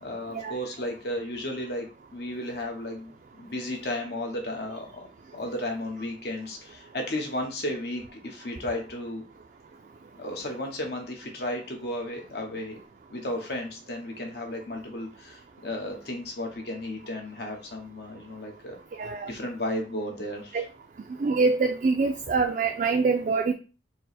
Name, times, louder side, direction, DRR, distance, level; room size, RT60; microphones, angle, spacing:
voice 1, 0.0-5.1 5.3-9.2 10.2-12.8 13.1-18.8 19.3-20.6, left 1 dB, 60° left, 2 dB, 1.0 m, -34 dB
voice 2, 19.0-19.3 20.5-20.6 21.2-23.5, right 4 dB, 45° right, 4 dB, 0.3 m, -24 dB
4.4 x 2.1 x 4.1 m, 0.34 s
head